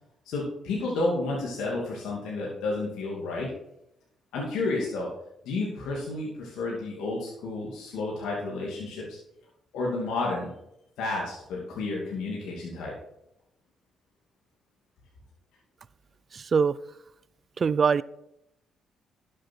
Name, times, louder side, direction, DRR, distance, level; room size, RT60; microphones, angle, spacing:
voice 1, 0.3-3.5 4.3-5.1 5.5-9.1 9.7-10.5 11.0-12.9, left 2 dB, 85° left, -4 dB, 2.6 m, -31 dB
voice 2, 16.3-16.8 17.6-18.0, right 6 dB, 45° right, 19 dB, 0.4 m, -23 dB
11.5 x 7.4 x 4.6 m, 0.80 s
cardioid pair, 75°, 0 cm